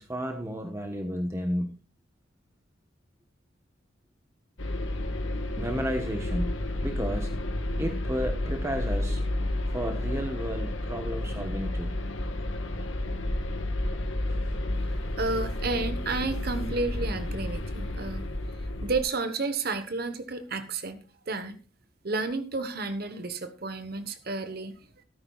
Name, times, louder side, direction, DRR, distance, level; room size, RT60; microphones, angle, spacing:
voice 1, 0.0-1.8 5.6-7.4 7.8-9.2 9.7-12.0 13.9-14.0 14.3-14.4, equal, 15° right, 4 dB, 1.1 m, -33 dB
sound 1, 4.6-19.0, left 1 dB, 85° left, 1.5 m, -31 dB
voice 2, 15.2-18.3 18.8-21.0 21.3-21.6 22.0-24.7, right 3 dB, 50° right, 9 dB, 1.1 m, -31 dB
17.5 x 9.8 x 2.4 m, 0.34 s
head